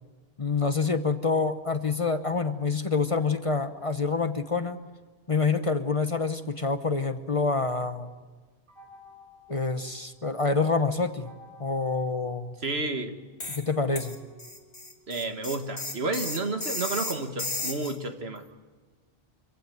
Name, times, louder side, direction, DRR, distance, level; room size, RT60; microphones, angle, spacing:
voice 1, 0.4-4.8 5.3-8.1 9.5-11.3 11.6-12.5 13.5-14.2, left 4 dB, 35° left, 10 dB, 0.9 m, -27 dB
sound 1, 8.7-10.5 11.2-13.0 13.7-17.9, left 3 dB, 50° right, 5.7 m, -55 dB
voice 2, 12.6-13.1 15.1-18.4, right 2 dB, 70° right, 7 dB, 1.9 m, -31 dB
sound 2, 13.4-13.7 14.0-18.0, left 2 dB, 85° left, 2.9 m, -34 dB
26.0 x 15.5 x 9.3 m, 1.4 s
omnidirectional pair, 1.1 m